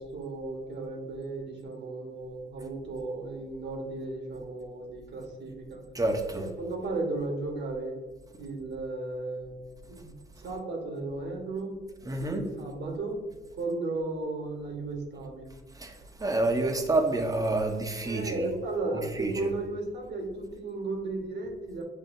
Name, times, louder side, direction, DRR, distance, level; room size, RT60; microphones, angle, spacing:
voice 1, 0.0-5.8 6.3-8.0 8.4-9.6 9.9-10.1 10.4-11.8 12.2-13.2 13.6-15.5 18.0-21.8, right 2 dB, 60° right, 1 dB, 1.3 m, -35 dB
voice 2, 5.9-6.4 12.1-12.4 15.8-15.9 16.2-18.5 19.2-19.5, right 2 dB, 20° right, 4 dB, 0.8 m, -28 dB
7.3 x 2.7 x 2.6 m, 1.3 s
cardioid pair, 90°, 20 cm